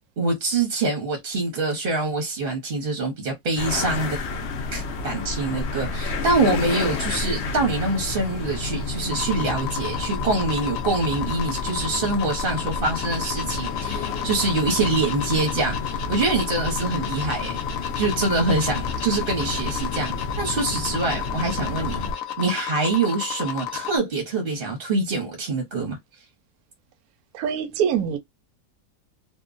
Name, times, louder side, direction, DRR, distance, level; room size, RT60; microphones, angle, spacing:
voice 1, 0.2-4.2 4.7-22.0 22.4-26.0, right 3 dB, 45° right, 0.8 m, -25 dB
sound 1, 3.6-22.1, left 3 dB, 80° left, 0.6 m, -30 dB
sound 2, 9.1-24.0, left 10 dB, 65° left, 0.9 m, -32 dB
voice 2, 27.3-28.2, right 8 dB, 70° right, 1.0 m, -24 dB
2.8 x 2.1 x 2.4 m
omnidirectional pair, 1.7 m